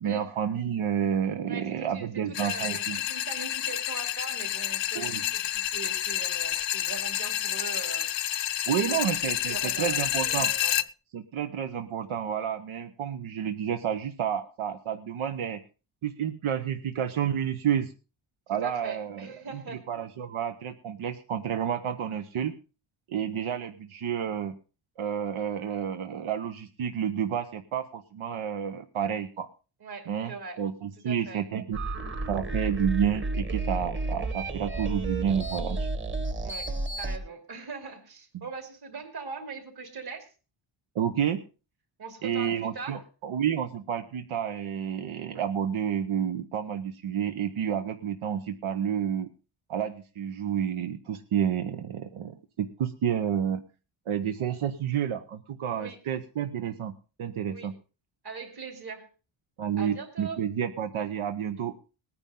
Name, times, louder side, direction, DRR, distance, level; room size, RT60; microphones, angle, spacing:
voice 1, 0.0-3.0 4.9-5.2 8.7-10.5 11.1-15.6 16.0-17.9 18.5-19.3 19.5-22.5 23.1-24.6 25.0-29.5 30.1-31.8 32.3-35.9 38.3-38.4 40.9-41.4 42.2-49.3 49.7-53.6 54.1-56.9 57.2-57.7 59.6-61.7, right 8 dB, 90° right, 8 dB, 1.0 m, -30 dB
voice 2, 1.5-8.1 8.9-10.8 18.5-19.8 29.8-30.6 31.0-31.4 36.4-40.3 42.0-43.0 55.8-56.0 57.5-57.7 58.2-59.1 59.8-60.4, right 5 dB, 50° right, 6 dB, 2.9 m, -41 dB
sound 1, 2.3-10.8, left 13 dB, 65° left, 0.6 m, -29 dB
sound 2, 31.7-37.2, right 2 dB, 25° right, 1.3 m, -31 dB
19.5 x 9.8 x 3.8 m, 0.33 s
wide cardioid pair, 160°, 48 cm